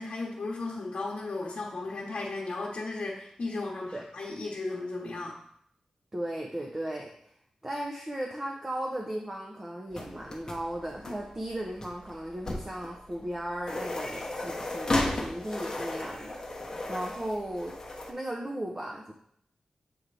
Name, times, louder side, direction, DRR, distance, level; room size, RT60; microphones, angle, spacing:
voice 1, 0.0-5.4, left 3 dB, 60° left, -5 dB, 1.0 m, -35 dB
voice 2, 6.1-7.3 7.6-19.1, right 1 dB, 20° right, 0 dB, 0.6 m, -36 dB
sound 1, 9.9-18.1, left 2 dB, 30° left, 0.9 m, -35 dB
7.6 x 3.7 x 3.3 m, 0.69 s
wide cardioid pair, 120°, 2 cm